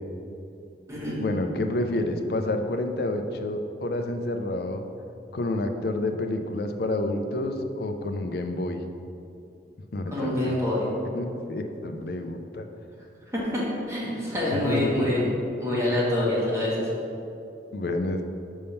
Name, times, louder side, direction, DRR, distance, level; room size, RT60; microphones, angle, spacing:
voice 1, 1.2-4.8 5.3-8.8 9.9-10.6 11.1-12.7 14.5-15.3 17.7-18.2, left 2 dB, 60° left, 6 dB, 0.4 m, -29 dB
voice 2, 10.1-10.9 13.5-15.2 15.6-16.9, left 1 dB, 15° right, -7 dB, 1.4 m, -26 dB
5.4 x 3.5 x 5.6 m, 2.7 s
head